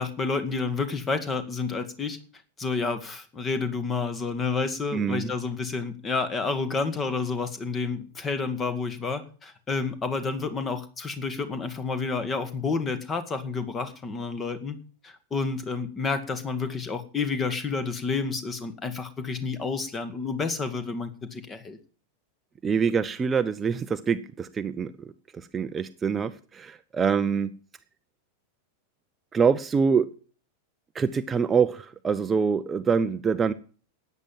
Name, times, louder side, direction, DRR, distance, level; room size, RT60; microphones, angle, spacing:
voice 1, 0.0-2.2 2.6-14.8 15.0-21.8, left 4 dB, 20° left, 11 dB, 1.9 m, -30 dB
voice 2, 4.9-5.3 22.6-27.5 29.3-30.1 30.9-33.5, right 6 dB, 20° right, 11 dB, 0.7 m, -25 dB
13.5 x 9.3 x 7.3 m, 0.41 s
figure-of-eight pair, 90°, 0 cm